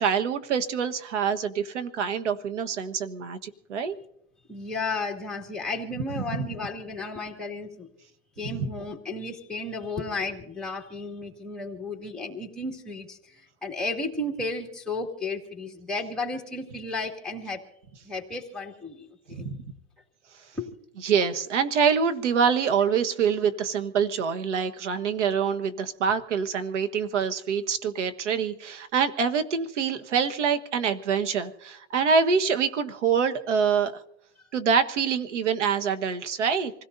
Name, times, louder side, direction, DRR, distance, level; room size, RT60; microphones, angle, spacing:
voice 1, 0.0-3.9 8.4-8.6 19.3-19.5 21.0-33.9 34.5-36.7, right 6 dB, 85° right, 8 dB, 1.5 m, -25 dB
voice 2, 4.5-7.9 8.4-13.3 13.6-17.6 18.0-19.5 20.5-20.7, left 2 dB, ahead, -1 dB, 2.3 m, -33 dB
26.5 x 17.0 x 2.7 m, 0.79 s
supercardioid pair, 130°, 35 cm